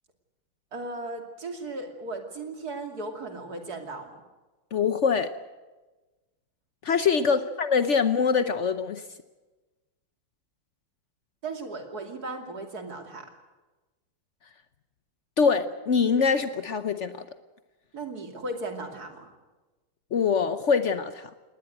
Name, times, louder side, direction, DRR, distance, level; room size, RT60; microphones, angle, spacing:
voice 1, 0.7-4.2 7.3-7.5 11.4-13.3 17.9-19.3, right 2 dB, 45° right, 5 dB, 3.1 m, -36 dB
voice 2, 4.7-5.3 6.8-9.0 15.4-17.1 20.1-21.3, left 6 dB, 80° left, 11 dB, 0.6 m, -24 dB
20.0 x 19.0 x 9.2 m, 1.2 s
omnidirectional pair, 2.4 m